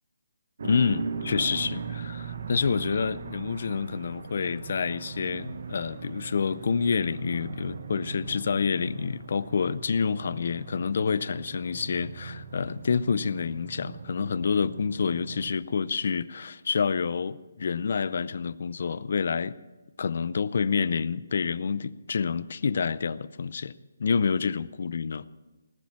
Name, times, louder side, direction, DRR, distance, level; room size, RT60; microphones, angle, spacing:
voice 1, 0.6-19.6 20.0-25.2, left 5 dB, 55° left, 0.5 m, -28 dB
sound 1, 0.6-15.5, right 5 dB, 55° right, 1.1 m, -39 dB
19.5 x 7.3 x 8.7 m
hypercardioid pair, 165°, 0 cm